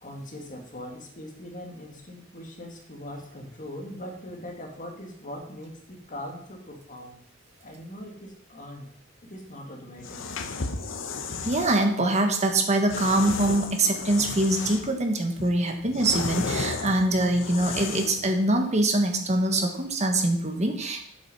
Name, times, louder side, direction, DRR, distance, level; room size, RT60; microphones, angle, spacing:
voice 1, 0.0-7.2 7.6-8.9 9.2-10.2, left 1 dB, 40° left, 1 dB, 2.1 m, -41 dB
sound 1, 10.0-11.8 12.9-15.0 15.4-18.3, left 4 dB, 70° left, 0.9 m, -33 dB
voice 2, 11.4-21.0, right 1 dB, 35° right, 4 dB, 1.4 m, -24 dB
8.2 x 7.4 x 5.5 m, 0.67 s
head